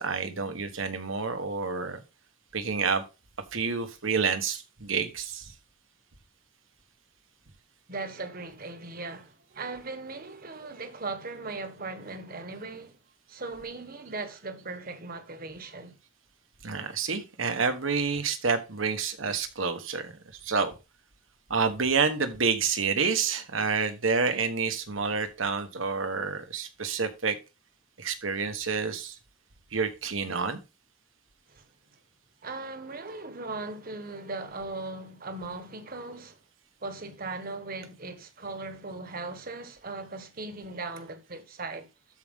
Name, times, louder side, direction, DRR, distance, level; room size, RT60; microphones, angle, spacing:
voice 1, 0.0-2.0 2.5-3.0 3.5-5.5 16.6-20.1 20.4-20.7 21.5-27.4 28.0-29.2 29.7-30.6, right 5 dB, 75° right, 1.4 m, -28 dB
voice 2, 7.9-13.0 13.3-15.9 31.5-31.6 32.4-36.4 36.8-41.9, right 3 dB, 45° right, 1.4 m, -38 dB
12.5 x 4.9 x 3.7 m
head